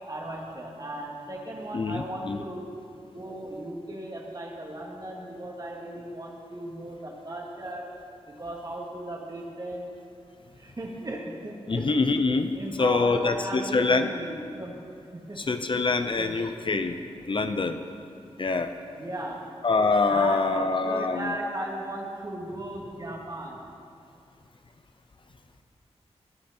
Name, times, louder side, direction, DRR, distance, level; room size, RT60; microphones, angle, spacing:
voice 1, 0.1-2.7 3.1-7.9 8.4-9.9 10.6-11.9 12.6-14.7 15.1-15.4 16.2-16.4 18.9-19.4 20.1-23.6, right 1 dB, 35° right, -2 dB, 2.5 m, -36 dB
voice 2, 1.7-2.4 11.7-12.5 12.8-14.1 15.4-17.0 17.3-17.8 18.4-18.7 19.6-21.4, left 3 dB, 50° left, 8 dB, 0.7 m, -25 dB
20.0 x 8.9 x 4.4 m, 2.4 s
wide cardioid pair, 70°, 11 cm